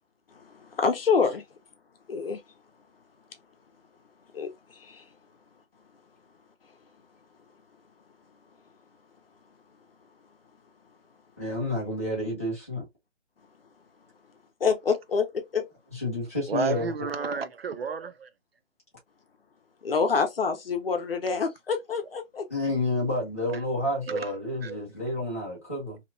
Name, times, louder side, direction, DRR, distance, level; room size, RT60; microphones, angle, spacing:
voice 1, 0.4-1.4 2.1-2.4 4.3-5.0 14.6-15.7 19.8-22.5, left 5 dB, 50° left, 0.7 m, -27 dB
voice 2, 11.4-12.9 15.9-17.1 22.5-26.0, left 1 dB, 10° left, 0.6 m, -30 dB
voice 3, 16.5-18.3 21.3-21.4 24.1-24.8, right 5 dB, 55° right, 0.5 m, -32 dB
2.8 x 2.1 x 2.6 m
hypercardioid pair, 175°, 37 cm